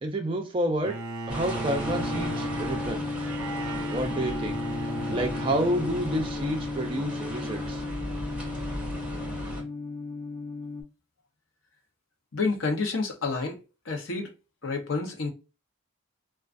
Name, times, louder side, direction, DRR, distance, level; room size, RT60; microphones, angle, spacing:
voice 1, 0.0-1.0 1.3-3.1 3.9-4.6 5.1-7.8, right 1 dB, 25° right, 0.4 m, -29 dB
Bowed string instrument, 0.8-7.0, right 2 dB, 90° right, 0.5 m, -37 dB
sound 1, 1.3-9.6, right 1 dB, 5° right, 1.3 m, -37 dB
sound 2, 1.8-10.8, left 3 dB, 25° left, 0.8 m, -35 dB
voice 2, 12.3-13.6 13.9-14.3 14.6-15.3, left 3 dB, 70° left, 0.7 m, -29 dB
2.4 x 2.3 x 2.3 m
head